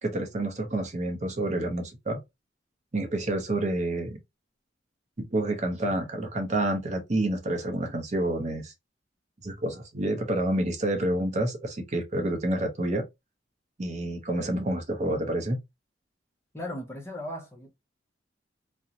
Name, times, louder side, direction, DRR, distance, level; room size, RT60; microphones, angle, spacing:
voice 1, 0.0-2.2 2.9-4.2 5.2-8.7 9.4-13.0 13.8-15.6, right 1 dB, 40° right, 0.6 m, -28 dB
voice 2, 16.5-17.7, left 1 dB, 15° left, 0.6 m, -37 dB
2.5 x 2.1 x 2.7 m
head